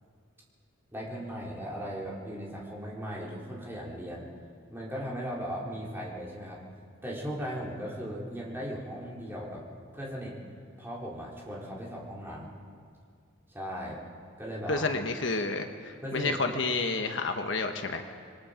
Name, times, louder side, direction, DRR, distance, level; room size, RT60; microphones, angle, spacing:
voice 1, 0.9-4.3 4.7-6.6 7.0-9.7 9.9-10.4 10.8-12.5 13.5-14.0 14.4-14.9 16.0-16.6, equal, 10° right, -5 dB, 3.7 m, -37 dB
voice 2, 14.7-18.1, left 3 dB, 60° left, 5 dB, 1.2 m, -30 dB
27.5 x 22.0 x 5.1 m, 2.1 s
head